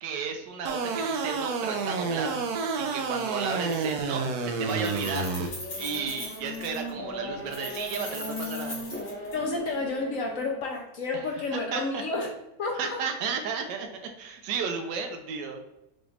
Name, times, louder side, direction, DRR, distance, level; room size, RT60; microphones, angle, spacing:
voice 1, 0.0-2.4 2.8-5.3 5.7-8.8 11.1-11.2 11.5-12.0 12.8-15.6, right 5 dB, 90° right, 4 dB, 1.4 m, -33 dB
sound 1, 0.7-5.5, right 4 dB, 70° right, 1.0 m, -29 dB
Keys jangling, 3.0-3.2 3.5-4.2 4.5-6.9 7.5-9.7, left 2 dB, 85° left, 2.5 m, -41 dB
Race car auto racing / Accelerating revving vroom, 5.4-10.6, left 1 dB, 10° left, 0.7 m, -38 dB
voice 2, 9.3-12.3 12.6-13.0, left 3 dB, 60° left, 1 dB, 0.9 m, -30 dB
6.0 x 2.5 x 3.2 m, 0.87 s
omnidirectional pair, 1.8 m